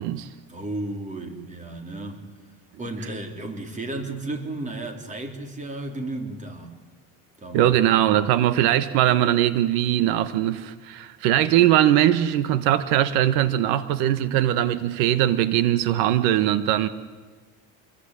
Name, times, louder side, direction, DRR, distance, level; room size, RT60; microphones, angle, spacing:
voice 1, 0.5-2.2 2.8-6.7 7.4-8.0, right 2 dB, 20° right, 5 dB, 3.6 m, -33 dB
voice 2, 7.5-16.9, right 12 dB, 70° right, 13 dB, 1.3 m, -21 dB
27.0 x 21.0 x 9.9 m, 1.4 s
cardioid pair, 150°, 38 cm